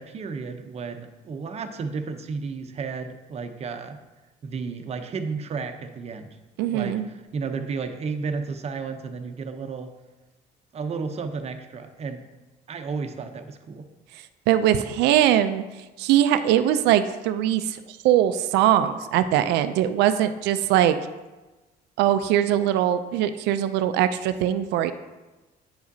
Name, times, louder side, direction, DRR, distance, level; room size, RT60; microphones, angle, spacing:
voice 1, 0.0-4.0 4.4-6.3 6.7-9.9 10.7-12.2 12.7-13.8, right 5 dB, 40° right, 7 dB, 0.7 m, -32 dB
voice 2, 6.6-7.1 14.5-15.6 16.0-17.8 18.0-21.0 22.0-24.9, right 11 dB, 85° right, 10 dB, 0.4 m, -21 dB
9.1 x 4.9 x 2.7 m, 1.1 s
cardioid pair, 110°, 17 cm